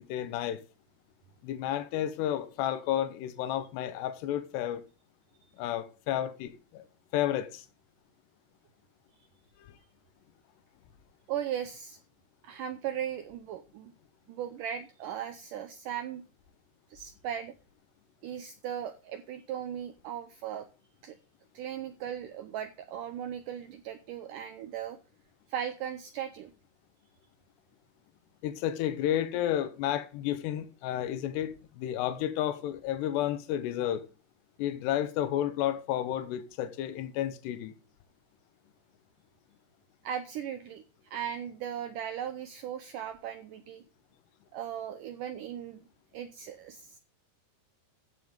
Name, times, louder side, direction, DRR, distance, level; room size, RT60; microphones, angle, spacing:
voice 1, 0.1-0.6 1.4-4.8 5.6-6.8 7.1-7.7 9.6-9.8 28.4-34.1 34.6-37.7, left 11 dB, 85° left, 3.1 m, -31 dB
voice 2, 11.3-12.0 12.4-13.9 14.3-16.2 16.9-17.5 18.2-20.7 21.0-21.2 21.5-25.0 25.5-26.5 40.0-43.8 44.5-45.8 46.1-47.0, right 9 dB, 85° right, 1.8 m, -37 dB
15.0 x 6.3 x 5.1 m
omnidirectional pair, 4.7 m